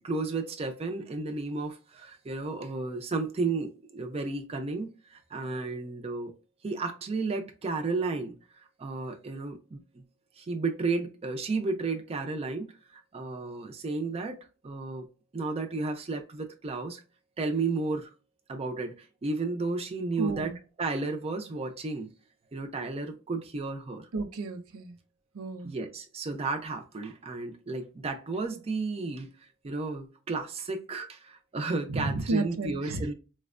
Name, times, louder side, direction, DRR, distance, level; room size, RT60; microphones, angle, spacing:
voice 1, 0.0-6.3 6.6-10.0 10.4-14.4 14.6-15.1 15.3-17.0 17.4-18.1 18.5-20.5 20.8-22.1 22.5-24.1 25.6-33.1, right 3 dB, 30° right, 0.4 m, -33 dB
voice 2, 20.2-20.6 24.1-25.0 25.3-25.7 31.9-33.0, right 2 dB, 85° right, 0.5 m, -32 dB
4.2 x 2.1 x 2.4 m
head